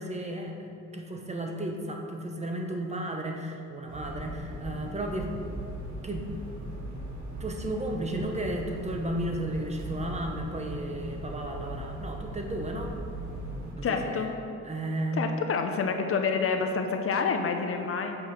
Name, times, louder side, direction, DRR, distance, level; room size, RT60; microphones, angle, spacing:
voice 1, 0.0-5.6 6.0-6.3 7.4-12.9 13.8-14.3 14.6-15.3, right 1 dB, 20° right, 2 dB, 1.0 m, -34 dB
sound 1, 3.9-13.8, right 1 dB, 65° right, 1.7 m, -39 dB
voice 2, 13.8-14.3 15.1-18.2, left 5 dB, 50° left, 5 dB, 0.7 m, -28 dB
6.2 x 5.4 x 6.5 m, 2.5 s
cardioid pair, 90°, 30 cm